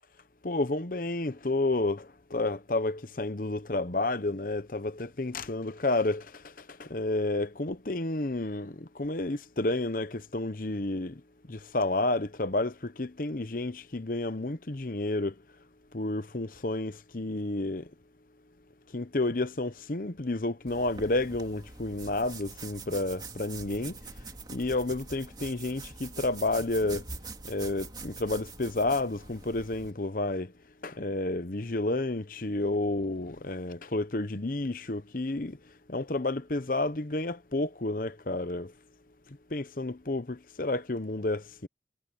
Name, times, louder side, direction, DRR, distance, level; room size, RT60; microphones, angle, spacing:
voice 1, 0.4-11.2 11.5-15.3 15.9-17.9 18.9-24.0 24.5-27.1 27.4-30.5 30.8-35.6 35.9-38.7 39.3-41.7, left 2 dB, 50° left, 1.0 m, -31 dB
sound 1, 20.7-29.9, right 3 dB, 25° right, 3.2 m, -44 dB
head